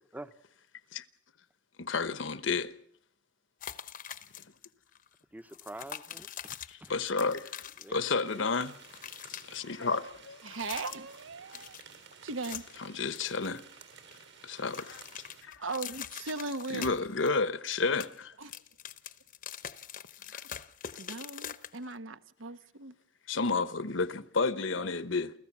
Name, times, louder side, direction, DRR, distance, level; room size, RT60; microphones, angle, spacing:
voice 1, 1.8-2.7 6.7-8.7 9.5-10.4 12.8-13.6 14.4-15.0 15.4-15.6 16.7-18.3 20.3-20.4 23.3-25.3, left 4 dB, 70° left, 1.0 m, -31 dB
sound 1, 3.6-4.7 4.9-5.1 5.5-8.3 8.6-9.6 10.4-11.2 11.5-12.8 13.2-14.2 14.5-17.4 17.7-22.0, left 9 dB, 45° left, 0.9 m, -44 dB
voice 2, 5.3-6.9 7.8-8.5 24.7-24.9, right 1 dB, 10° right, 0.8 m, -47 dB
sound 2, 8.2-15.4, right 6 dB, 65° right, 4.0 m, -54 dB
voice 3, 10.4-11.8 12.1-12.6 15.6-16.9 18.4-18.5 21.0-22.9, right 3 dB, 85° right, 1.1 m, -38 dB
29.0 x 14.5 x 7.4 m
head